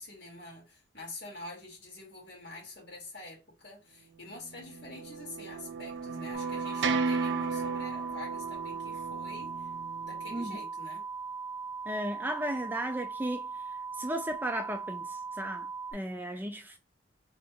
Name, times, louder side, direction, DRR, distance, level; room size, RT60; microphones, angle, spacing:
voice 1, 0.0-9.7 10.0-11.1, left 2 dB, 70° left, 2.4 m, -46 dB
sound 1, 4.6-10.5, right 4 dB, 70° right, 0.5 m, -35 dB
sound 2, 6.3-15.9, right 5 dB, 40° right, 1.0 m, -39 dB
voice 2, 11.9-13.5 14.0-16.8, right 1 dB, 10° right, 0.3 m, -35 dB
3.9 x 2.4 x 3.4 m
head